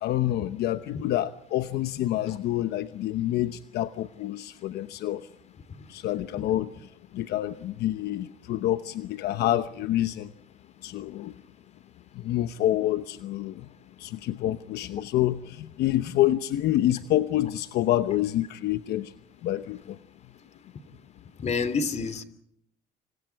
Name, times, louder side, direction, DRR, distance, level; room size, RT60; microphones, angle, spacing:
voice 1, 0.0-5.3 5.9-6.7 7.1-10.3 10.8-11.3 12.2-13.7 14.0-19.1 19.4-20.0, left 13 dB, 75° left, 11 dB, 1.0 m, -27 dB
voice 2, 21.4-22.2, left 5 dB, 40° left, 14 dB, 3.0 m, -27 dB
29.0 x 28.0 x 4.7 m, 0.70 s
cardioid pair, 110°, 17 cm